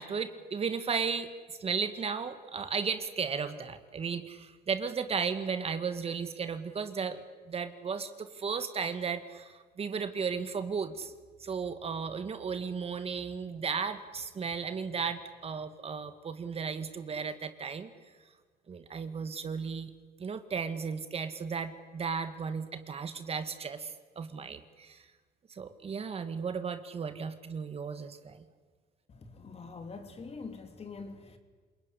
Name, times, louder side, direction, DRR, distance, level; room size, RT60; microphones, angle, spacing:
voice 1, 0.0-7.2 7.5-11.1 11.4-17.9 18.7-19.9 20.2-25.0 25.5-28.5, right 6 dB, 35° right, 9 dB, 1.8 m, -35 dB
voice 2, 29.1-31.4, left 4 dB, 35° left, 7 dB, 3.1 m, -44 dB
27.5 x 21.0 x 9.9 m, 1.5 s
cardioid pair, 110°, 17 cm